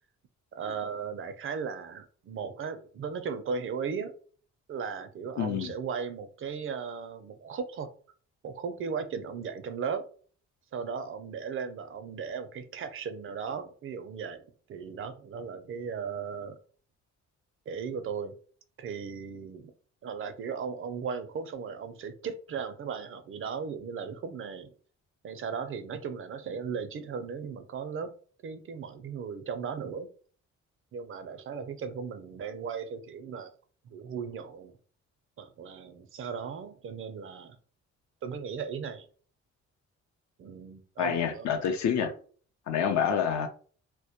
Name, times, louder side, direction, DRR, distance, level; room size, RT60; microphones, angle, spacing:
voice 1, 0.5-4.1 4.7-7.9 8.4-10.1 10.7-16.6 17.7-18.3 18.8-19.7 20.0-24.7 25.2-28.1 28.4-30.1 30.9-33.5 33.9-34.7 35.4-37.6 38.2-39.1 40.4-41.5 42.0-42.1, right 6 dB, 45° right, 0.4 m, -37 dB
voice 2, 5.4-5.7 41.0-42.1 42.7-43.5, left 8 dB, 65° left, 0.5 m, -27 dB
2.1 x 2.1 x 2.8 m
cardioid pair, 90°, 30 cm